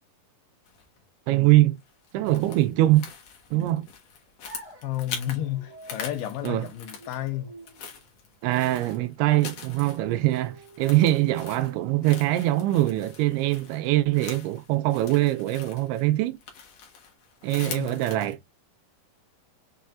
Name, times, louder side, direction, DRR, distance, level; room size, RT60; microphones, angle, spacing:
Steps on undergrowth, 0.7-1.0 1.8-5.4 5.7-7.3 7.6-18.3, left 6 dB, 60° left, 1.7 m, -43 dB
voice 1, 1.3-1.8 2.1-3.1 3.5-3.9 6.4-6.7 8.4-16.4 17.4-18.4, right 16 dB, 90° right, 2.7 m, -23 dB
sound 1, 4.4-12.4, right 1 dB, 30° right, 0.6 m, -50 dB
voice 2, 4.8-7.5 17.6-18.0, left 12 dB, 85° left, 2.5 m, -32 dB
6.4 x 3.3 x 2.4 m
omnidirectional pair, 4.5 m